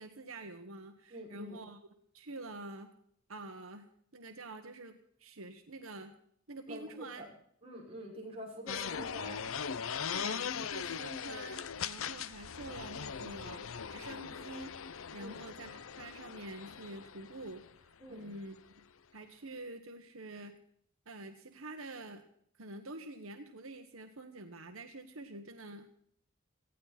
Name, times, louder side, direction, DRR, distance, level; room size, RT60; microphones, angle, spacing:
voice 1, 0.0-1.8 2.1-2.9 3.3-6.1 6.5-7.2 10.1-13.6 13.9-18.6 19.1-20.6 21.0-22.3 22.6-25.9, right 2 dB, 80° right, 6 dB, 1.5 m, -47 dB
voice 2, 1.1-1.6 6.7-7.3 7.6-9.4 15.2-15.4 18.0-18.4, equal, 30° right, -3 dB, 5.9 m, -46 dB
sound 1, 8.7-17.7, left 7 dB, 75° left, 0.7 m, -40 dB
18.5 x 15.0 x 4.3 m, 0.64 s
head